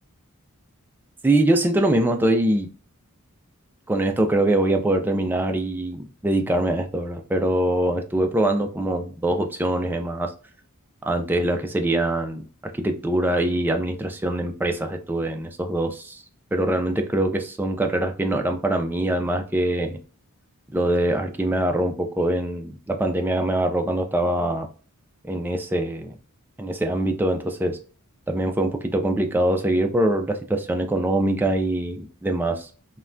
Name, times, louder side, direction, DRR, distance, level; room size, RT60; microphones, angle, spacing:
voice 1, 1.2-2.7 3.9-10.3 11.0-16.2 16.5-20.0 20.7-24.7 25.2-26.1 26.6-27.8 28.3-32.7, right 1 dB, 10° right, 0.3 m, -23 dB
3.2 x 2.2 x 2.4 m
head